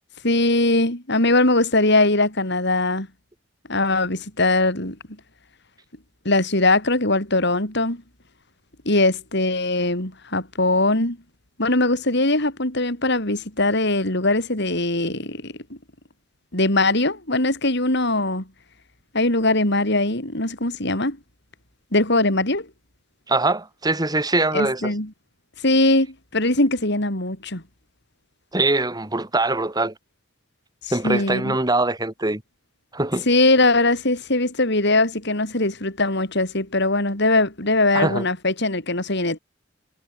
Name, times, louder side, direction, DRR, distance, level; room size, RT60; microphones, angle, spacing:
voice 1, 0.2-3.1 3.7-5.0 6.2-8.0 8.8-11.2 11.6-15.8 16.5-18.4 19.1-21.2 21.9-22.7 24.5-25.1 25.6-26.1 26.3-27.6 30.9-31.6 33.3-39.4, left 2 dB, 60° left, 7.9 m, -21 dB
voice 2, 23.3-24.9 28.5-29.9 30.9-32.4 32.9-33.2 37.9-38.2, right 2 dB, 20° right, 2.5 m, -22 dB
head